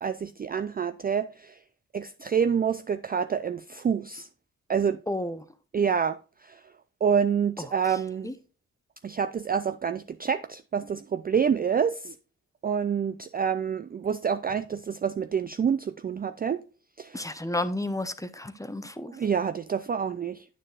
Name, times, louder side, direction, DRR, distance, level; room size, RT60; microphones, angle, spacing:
voice 1, 0.0-1.6 1.9-4.3 4.7-5.0 5.7-6.6 7.0-8.3 9.0-12.1 12.6-16.6 17.0-17.3 19.1-20.5, right 7 dB, 25° right, 0.3 m, -27 dB
voice 2, 5.1-5.4 8.2-8.3 17.1-19.1, left 1 dB, 10° left, 0.8 m, -31 dB
8.9 x 6.7 x 2.4 m
cardioid pair, 50°, 35 cm